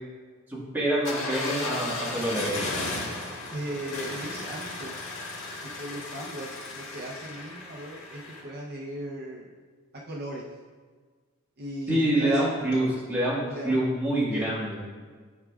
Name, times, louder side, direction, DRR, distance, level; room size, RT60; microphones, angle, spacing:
voice 1, 0.7-2.7 11.9-14.8, right 1 dB, 10° right, -7 dB, 1.7 m, -26 dB
sound 1, 1.0-8.4, left 2 dB, 70° left, 1.7 m, -35 dB
voice 2, 3.5-5.0 5.8-9.5 10.0-10.4 11.6-12.9 13.5-13.8 14.3-14.5, right 1 dB, 45° right, -2 dB, 0.7 m, -38 dB
12.0 x 4.8 x 2.4 m, 1.5 s
head